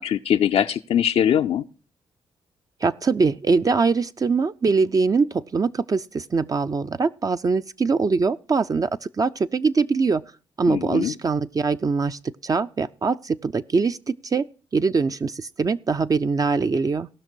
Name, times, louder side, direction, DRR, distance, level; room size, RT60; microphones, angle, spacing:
voice 1, 0.0-1.6 10.7-11.1, left 9 dB, 70° left, 0.5 m, -22 dB
voice 2, 2.8-10.2 10.6-14.4 14.7-17.1, right 4 dB, 35° right, 0.4 m, -23 dB
17.5 x 6.0 x 4.4 m
supercardioid pair, 60°, 11 cm